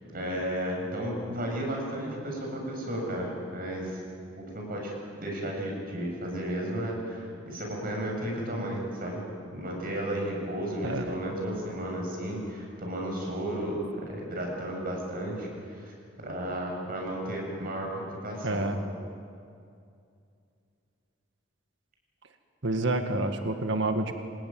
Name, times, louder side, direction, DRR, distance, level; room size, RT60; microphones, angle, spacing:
voice 1, 0.0-4.0 4.4-9.2 9.5-15.9 16.2-18.6, right 1 dB, 50° right, 0 dB, 7.8 m, -33 dB
voice 2, 10.8-11.2 18.4-18.8 22.6-24.1, right 2 dB, 65° right, 6 dB, 1.9 m, -28 dB
27.0 x 20.0 x 9.6 m, 2.4 s
head